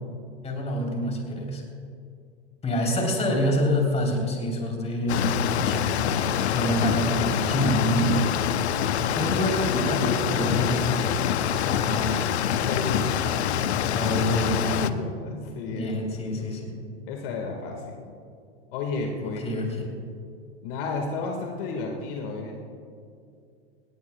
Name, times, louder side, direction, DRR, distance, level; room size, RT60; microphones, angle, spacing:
voice 1, 0.4-1.6 2.6-8.5 9.1-11.1 11.5-12.2 13.8-14.9 15.7-16.7 19.2-19.9, equal, 20° left, 0 dB, 3.5 m, -27 dB
sound 1, 5.1-14.9, left 9 dB, 75° left, 0.7 m, -25 dB
voice 2, 11.8-13.1 14.8-15.9 16.3-16.4 17.1-18.1 18.7-19.5 20.6-22.6, left 4 dB, 55° left, 2 dB, 1.8 m, -33 dB
19.0 x 17.5 x 2.3 m, 2.4 s
hypercardioid pair, 105°, 33 cm